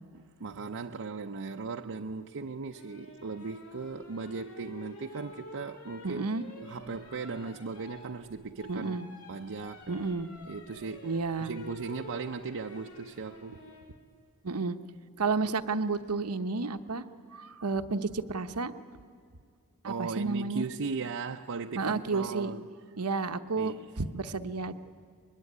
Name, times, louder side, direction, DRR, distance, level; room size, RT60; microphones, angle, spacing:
voice 1, 0.1-6.3 6.6-9.0 9.3-10.1 10.5-11.2 11.4-13.6 19.8-22.7 23.6-23.9, right 4 dB, 65° right, 3 dB, 0.6 m, -38 dB
sound 1, 2.7-13.9 15.6-16.0, left 2 dB, 75° left, 3.5 m, -50 dB
voice 2, 6.0-6.4 8.7-9.1 9.9-10.3 11.0-11.5 14.4-14.8 15.2-17.0 17.3-18.7 19.8-20.7 21.7-22.5 23.0-24.7, right 4 dB, 90° right, 9 dB, 1.0 m, -31 dB
23.5 x 21.5 x 9.8 m, 2.2 s
head